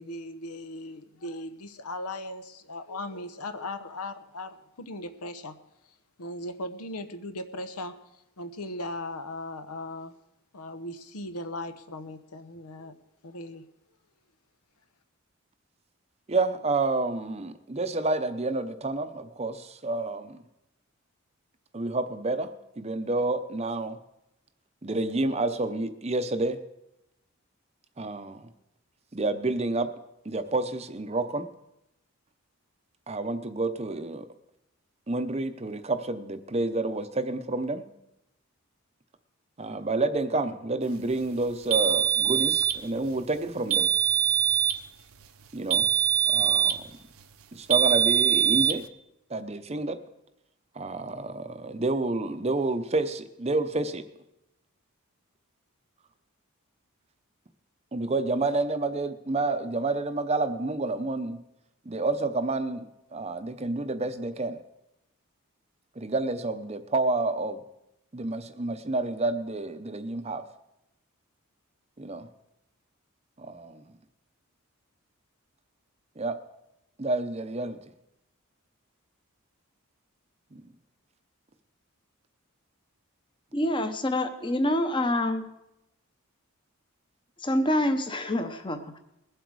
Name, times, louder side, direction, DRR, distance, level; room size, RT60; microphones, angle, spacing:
voice 1, 0.0-5.5 5.8-10.1 10.5-12.9 13.2-13.6, left 1 dB, 90° left, 10 dB, 0.9 m, -38 dB
voice 2, 16.3-20.4 21.7-24.0 24.8-26.6 28.0-28.5 29.1-29.9 30.2-31.5 33.1-34.3 35.1-37.8 39.6-43.9 45.5-45.9 46.3-47.0 47.5-48.8 49.3-50.0 50.7-54.1 57.9-61.4 61.9-64.6 66.0-67.6 68.1-70.4 72.0-72.3 73.4-73.9 76.2-76.4 77.0-77.8 80.5-80.7, right 2 dB, 30° right, 10 dB, 0.7 m, -29 dB
sound 1, 41.7-42.8 43.7-44.8 45.7-46.8 47.7-48.8, right 10 dB, 70° right, 0.7 m, -23 dB
voice 3, 83.5-85.5 87.4-89.0, left 1 dB, 20° left, 8 dB, 0.9 m, -26 dB
20.5 x 7.9 x 4.8 m, 0.86 s
head